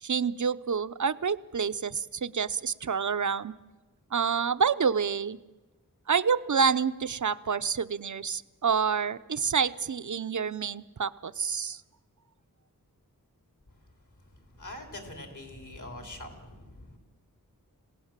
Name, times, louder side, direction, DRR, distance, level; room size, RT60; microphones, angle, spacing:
voice 1, 0.0-3.5 4.1-5.4 6.1-11.8, right 6 dB, 55° right, 13 dB, 0.7 m, -28 dB
voice 2, 13.7-17.0, left 1 dB, 55° left, 3 dB, 3.7 m, -44 dB
27.5 x 17.5 x 7.4 m, 1.2 s
wide cardioid pair, 75°, 35 cm